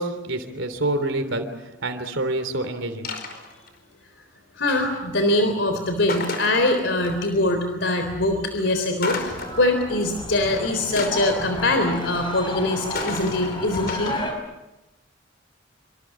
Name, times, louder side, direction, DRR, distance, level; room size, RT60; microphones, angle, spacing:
voice 1, 0.0-1.4 1.8-3.1, right 2 dB, 85° right, 8 dB, 3.2 m, -27 dB
sound 1, 3.0-3.7 6.1-7.1 9.0-9.8 11.0-12.1 12.9-14.2, left 3 dB, 55° left, 5.0 m, -32 dB
voice 2, 4.6-14.2, left 1 dB, 70° left, 6 dB, 3.8 m, -23 dB
sound 2, 9.1-14.3, left 1 dB, 25° left, 5.7 m, -33 dB
27.0 x 26.0 x 7.5 m, 1.0 s
head